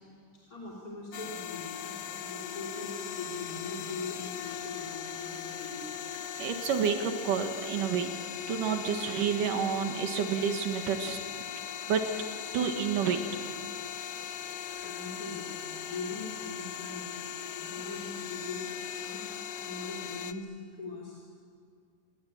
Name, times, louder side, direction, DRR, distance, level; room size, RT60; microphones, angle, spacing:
voice 1, 0.5-6.1 8.5-8.6 13.7-13.9 14.8-17.1 17.5-19.3 19.6-21.2, left 3 dB, 25° left, -3 dB, 3.7 m, -42 dB
sound 1, 1.1-20.3, left 9 dB, 65° left, 1.7 m, -39 dB
voice 2, 6.4-8.1 8.5-11.2 11.9-12.0 12.5-13.2, right 7 dB, 80° right, 5 dB, 3.2 m, -29 dB
28.5 x 23.0 x 8.8 m, 2.2 s
omnidirectional pair, 3.7 m